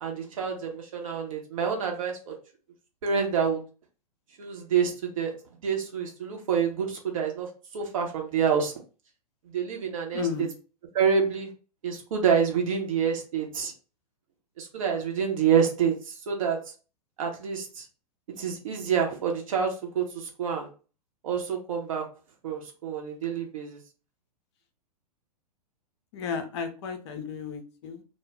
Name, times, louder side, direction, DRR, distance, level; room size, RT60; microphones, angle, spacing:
voice 1, 0.0-2.3 3.0-3.6 4.4-5.3 5.6-8.7 9.5-10.2 10.9-11.5 11.8-13.7 14.6-16.6 17.2-17.8 18.4-20.7 21.2-22.0 22.4-23.8, right 7 dB, 55° right, 1 dB, 0.9 m, -27 dB
voice 2, 10.1-10.5 26.1-28.0, left 6 dB, 45° left, 6 dB, 0.5 m, -33 dB
2.3 x 2.1 x 3.2 m, 0.36 s
figure-of-eight pair, 105°, 20 cm